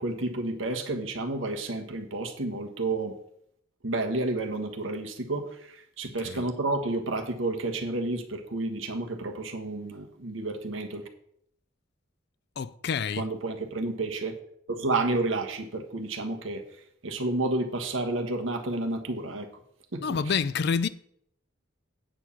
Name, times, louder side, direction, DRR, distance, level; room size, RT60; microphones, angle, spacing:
voice 1, 0.0-3.1 3.8-11.0 13.2-14.4 14.7-16.6 17.0-19.5 19.9-20.2, right 2 dB, 75° right, 1.3 m, -30 dB
voice 2, 12.6-13.3 20.0-20.9, left 6 dB, 55° left, 0.4 m, -28 dB
8.8 x 4.6 x 7.1 m
head